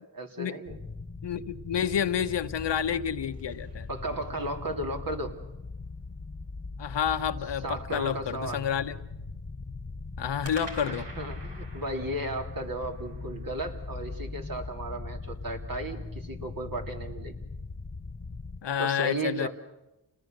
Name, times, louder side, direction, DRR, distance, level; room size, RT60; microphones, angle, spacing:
voice 1, 0.1-0.8 3.9-5.4 7.6-8.6 10.9-17.3 18.8-19.5, right 1 dB, 50° right, 3 dB, 3.3 m, -35 dB
sound 1, 0.7-18.6, left 3 dB, 30° left, 1.4 m, -40 dB
voice 2, 1.2-3.9 6.8-9.0 10.2-11.1 18.6-19.5, left 8 dB, 80° left, 10 dB, 1.1 m, -29 dB
sound 2, 3.0-4.6 10.4-14.7, right 2 dB, 75° right, 3.8 m, -48 dB
29.5 x 20.0 x 6.7 m, 0.94 s
cardioid pair, 50°, 42 cm